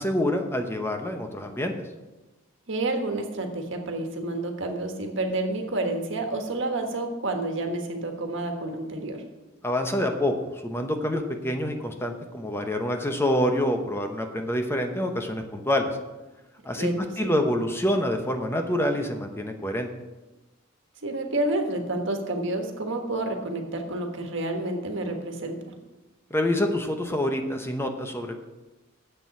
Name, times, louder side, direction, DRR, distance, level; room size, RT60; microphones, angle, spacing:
voice 1, 0.0-1.7 9.6-16.0 16.6-16.9 17.2-19.9 26.3-28.4, left 1 dB, 10° left, 5 dB, 0.8 m, -26 dB
voice 2, 2.7-9.2 16.8-17.3 21.0-25.7, right 2 dB, 65° right, 4 dB, 1.5 m, -29 dB
7.8 x 6.8 x 8.2 m, 1.1 s
head